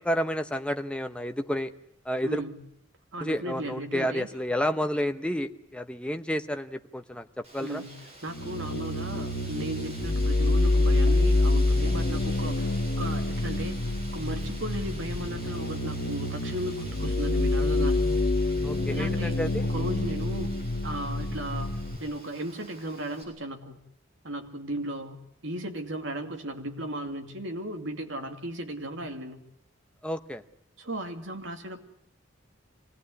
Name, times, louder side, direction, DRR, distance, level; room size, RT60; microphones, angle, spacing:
voice 1, 0.0-1.7 2.1-2.4 3.2-7.8 18.6-19.7 30.0-30.4, equal, 5° left, 7 dB, 0.9 m, -30 dB
voice 2, 2.2-2.5 3.1-4.3 7.6-7.9 8.2-12.7 13.0-13.8 14.1-18.1 18.9-20.5 20.8-23.8 24.2-25.2 25.4-29.4 30.8-31.8, right 1 dB, 70° right, 4 dB, 2.7 m, -36 dB
Wind, 7.4-23.2, right 1 dB, 30° right, 7.5 m, -47 dB
sound 1, 8.3-22.0, left 2 dB, 55° left, 1.6 m, -27 dB
25.0 x 18.0 x 9.7 m, 0.73 s
head